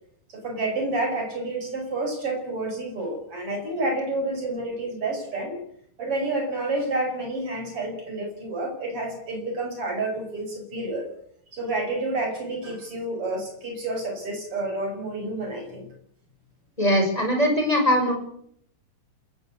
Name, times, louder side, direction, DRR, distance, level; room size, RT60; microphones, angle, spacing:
voice 1, 0.3-5.6 6.0-11.1 11.5-15.9, right 2 dB, 35° right, 3 dB, 7.1 m, -29 dB
voice 2, 16.8-18.1, equal, 10° left, 3 dB, 6.1 m, -21 dB
27.0 x 15.5 x 8.4 m, 0.70 s
omnidirectional pair, 4.5 m